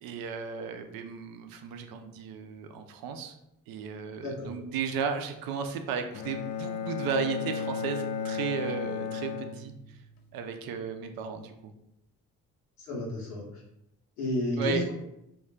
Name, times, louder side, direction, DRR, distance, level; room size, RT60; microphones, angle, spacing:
voice 1, 0.0-3.3 3.7-10.0 10.3-11.5 14.6-14.8, right 6 dB, 55° right, 6 dB, 0.5 m, -34 dB
voice 2, 4.2-4.5 12.8-13.4 14.2-14.9, left 1 dB, 85° left, -5 dB, 0.9 m, -31 dB
Bowed string instrument, 6.1-10.2, left 6 dB, 55° left, 0.5 m, -34 dB
2.4 x 2.2 x 3.6 m, 0.83 s
hypercardioid pair, 45°, 42 cm